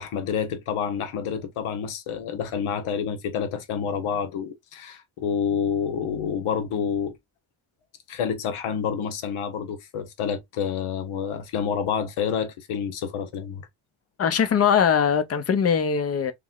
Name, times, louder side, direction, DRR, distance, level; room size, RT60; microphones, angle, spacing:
voice 1, 0.0-7.2 8.1-13.6, left 7 dB, 80° left, 1.2 m, -28 dB
voice 2, 14.2-16.3, left 7 dB, 30° left, 0.6 m, -21 dB
3.4 x 3.1 x 3.6 m
cardioid pair, 170°, 49 cm